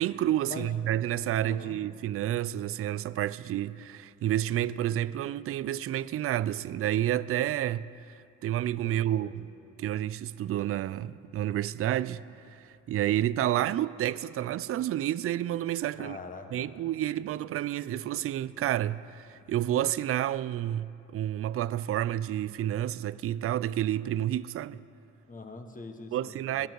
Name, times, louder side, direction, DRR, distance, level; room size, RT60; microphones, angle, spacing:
voice 1, 0.0-7.9 8.4-9.5 9.8-12.2 12.5-16.2 16.5-24.8 26.1-26.7, right 12 dB, 50° right, 0.4 m, -30 dB
voice 2, 1.4-1.8 8.8-9.4 16.0-16.7 25.3-26.7, left 3 dB, 25° left, 1.5 m, -43 dB
21.0 x 11.5 x 4.7 m
cardioid pair, 90°, 30 cm